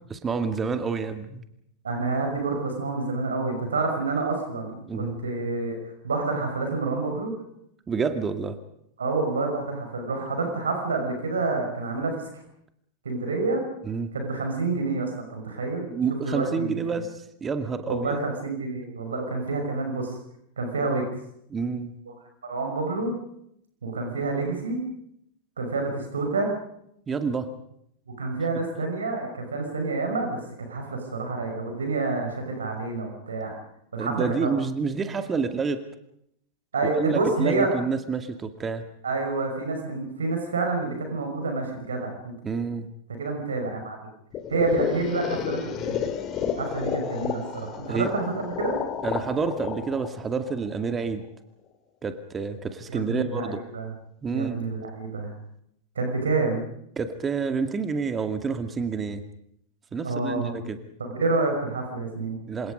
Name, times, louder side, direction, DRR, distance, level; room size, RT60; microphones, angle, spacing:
voice 1, 0.1-1.4 4.9-5.2 7.9-8.6 13.8-14.1 15.9-17.1 17.4-18.2 20.8-20.9 21.5-21.9 27.1-27.5 34.0-35.8 36.8-38.9 42.4-42.9 47.9-48.1 49.0-51.3 52.0-53.6 54.2-54.7 57.0-59.2 59.9-60.8 62.5-62.7, right 5 dB, 20° right, 8 dB, 2.2 m, -28 dB
voice 2, 1.8-5.8 6.0-7.3 9.0-12.3 13.0-13.6 14.1-16.8 17.9-20.2 20.6-21.1 22.1-22.2 22.4-23.2 23.8-24.8 25.6-26.5 28.2-30.4 30.7-33.5 33.9-34.5 36.7-37.7 39.0-42.4 43.1-44.0 44.5-46.0 46.6-48.8 52.9-53.9 54.3-55.3 56.0-56.7 60.0-60.7 61.0-62.4, right 3 dB, 70° right, 4 dB, 5.7 m, -28 dB
sound 1, 44.3-51.2, left 8 dB, 30° left, 2.9 m, -31 dB
27.5 x 26.5 x 5.3 m, 0.74 s
figure-of-eight pair, 90°, 0 cm